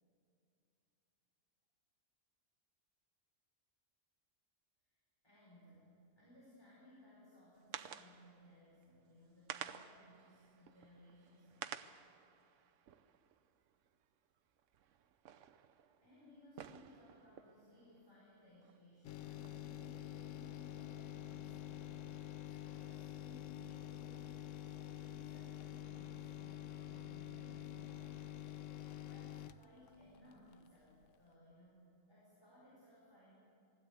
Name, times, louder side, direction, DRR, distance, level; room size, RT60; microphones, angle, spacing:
voice 1, 5.2-11.8 16.0-24.2 24.6-33.3, left 1 dB, 20° left, -7 dB, 5.0 m, -62 dB
sound 1, 7.6-8.5 8.8-8.9 9.3-14.0 14.6-18.8 19.2-20.3, right 9 dB, 85° right, 1.1 m, -52 dB
sound 2, 19.0-30.7 31.0-31.1, left 11 dB, 85° left, 1.0 m, -47 dB
20.0 x 16.0 x 8.2 m, 2.7 s
omnidirectional pair, 1.2 m